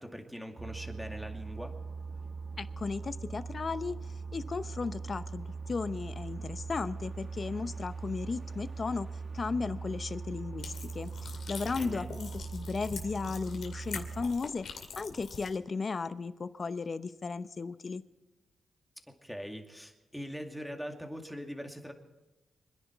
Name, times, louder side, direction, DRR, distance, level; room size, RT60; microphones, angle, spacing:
voice 1, 0.0-1.7 11.8-12.1 19.1-21.9, equal, ahead, 3 dB, 2.3 m, -42 dB
sound 1, 0.6-14.3, right 4 dB, 45° right, 1.5 m, -41 dB
voice 2, 2.6-9.1 9.3-14.7 15.0-18.0, left 4 dB, 45° left, 13 dB, 0.8 m, -35 dB
sound 2, 10.6-15.6, left 5 dB, 75° left, 2.4 m, -45 dB
26.5 x 10.5 x 4.6 m, 1.1 s
cardioid pair, 85°, 0 cm